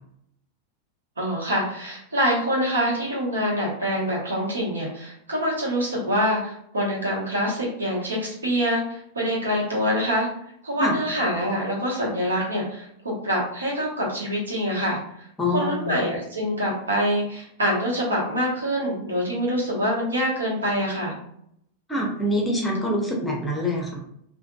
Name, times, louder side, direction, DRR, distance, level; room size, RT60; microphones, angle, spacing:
voice 1, 1.2-10.3 10.6-21.2, equal, 70° right, -4 dB, 1.0 m, -25 dB
voice 2, 15.4-16.0 21.9-24.0, left 1 dB, 10° left, -1 dB, 0.7 m, -25 dB
3.6 x 2.3 x 2.3 m, 0.72 s
figure-of-eight pair, 90°, 0 cm